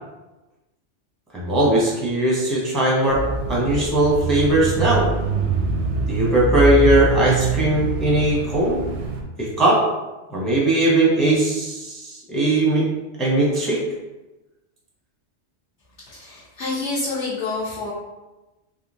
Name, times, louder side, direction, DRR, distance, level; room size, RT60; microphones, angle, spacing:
voice 1, 1.3-3.2 3.5-5.1 6.1-8.8 9.4-9.8 10.3-12.9 13.2-13.8, right 1 dB, ahead, -5 dB, 0.6 m, -19 dB
Bicycle / Mechanisms, 3.1-9.2, right 4 dB, 80° right, 0.9 m, -24 dB
voice 2, 16.1-17.9, left 3 dB, 70° left, -10 dB, 1.2 m, -27 dB
3.5 x 2.7 x 2.6 m, 1.1 s
omnidirectional pair, 1.2 m